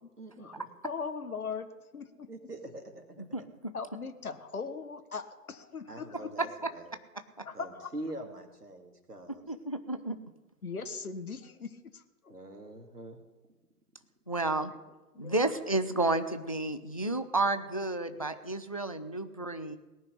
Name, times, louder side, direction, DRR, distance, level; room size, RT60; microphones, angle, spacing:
voice 1, 0.2-0.6 2.3-3.2 5.9-6.8 7.5-9.4 12.3-13.2, right 1 dB, 85° right, 2.4 m, -44 dB
voice 2, 0.8-1.7 1.9-2.3 3.7-6.1 7.5-7.8 10.6-12.3 15.1-15.3, left 5 dB, 70° left, 1.5 m, -39 dB
voice 3, 3.2-3.7 6.4-6.7 7.4-7.5 9.5-10.2 14.3-14.7 15.2-19.8, right 2 dB, 25° left, 0.4 m, -31 dB
18.0 x 6.4 x 9.8 m
figure-of-eight pair, 130°, 46 cm